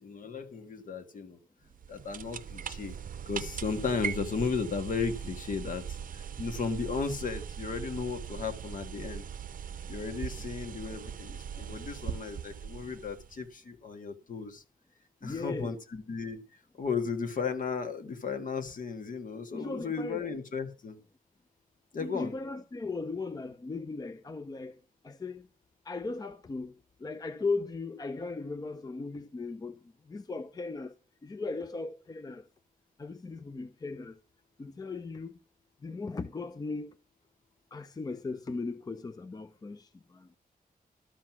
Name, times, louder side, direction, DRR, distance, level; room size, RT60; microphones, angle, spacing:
voice 1, 0.0-1.4 1.9-3.0 3.3-9.3 9.9-14.6 15.2-21.0 21.9-22.3, left 5 dB, 60° left, 1.8 m, -35 dB
sound 1, 1.7-13.5, right 8 dB, 65° right, 0.6 m, -40 dB
voice 2, 15.2-15.8 19.5-20.3 22.0-24.7 25.0-25.4 25.9-26.7 27.0-29.8 30.1-30.9 31.2-32.5 33.0-34.2 34.6-35.4 35.8-36.9 37.7-40.3, left 3 dB, 25° left, 0.5 m, -37 dB
12.5 x 7.6 x 6.0 m
wide cardioid pair, 170°, 15 cm